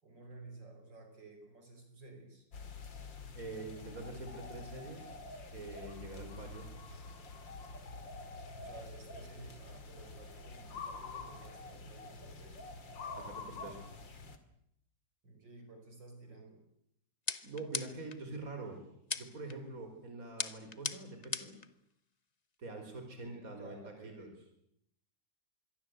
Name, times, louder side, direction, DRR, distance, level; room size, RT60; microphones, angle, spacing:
voice 1, 0.0-2.5 8.6-12.7 15.2-16.6 23.2-24.4, right 3 dB, 75° right, 4 dB, 6.0 m, -54 dB
sound 1, 2.5-14.4, left 3 dB, 85° left, 3.0 m, -47 dB
voice 2, 3.3-5.1 5.5-6.7 13.1-13.8 17.4-18.8 19.2-21.6 22.6-24.3, right 2 dB, 45° right, 5 dB, 5.0 m, -45 dB
sound 2, 17.3-18.2 19.1-19.5 20.4-21.7, left 4 dB, 30° left, 0.9 m, -38 dB
26.0 x 22.5 x 8.1 m, 0.76 s
omnidirectional pair, 2.0 m